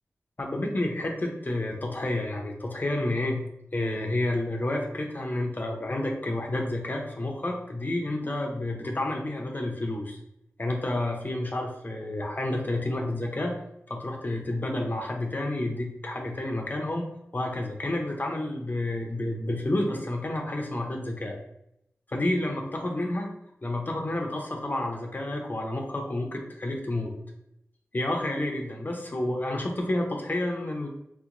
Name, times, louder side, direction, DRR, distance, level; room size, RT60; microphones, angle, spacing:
voice 1, 0.4-3.4 3.7-10.2 10.6-13.6 13.9-17.1 17.3-21.4 22.1-23.3 23.6-27.1 27.9-30.9, left 1 dB, 40° left, 1 dB, 0.6 m, -30 dB
3.4 x 2.9 x 2.5 m, 0.79 s
cardioid pair, 40°, 5 cm